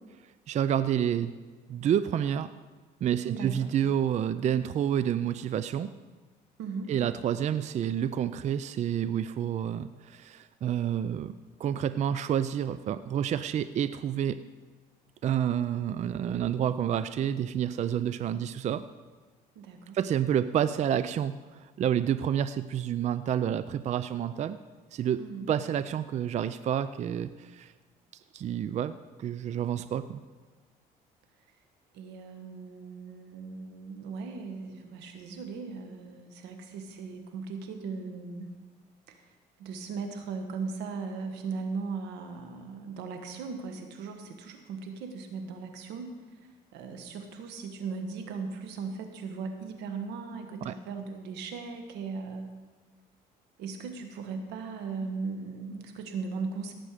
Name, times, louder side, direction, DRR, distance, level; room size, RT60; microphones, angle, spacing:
voice 1, 0.5-1.3 1.7-2.5 3.0-5.9 6.9-11.3 11.6-14.4 15.2-18.8 19.9-24.6 24.9-25.2 25.5-27.7 28.3-30.2 50.6-50.7, right 9 dB, 45° right, 13 dB, 0.4 m, -29 dB
voice 2, 3.2-3.7 6.6-6.9 19.5-20.0 25.2-25.5 31.9-38.5 39.1-52.5 53.6-56.7, right 4 dB, 90° right, 6 dB, 1.6 m, -38 dB
17.5 x 7.6 x 5.0 m, 1.3 s
cardioid pair, 110°, 17 cm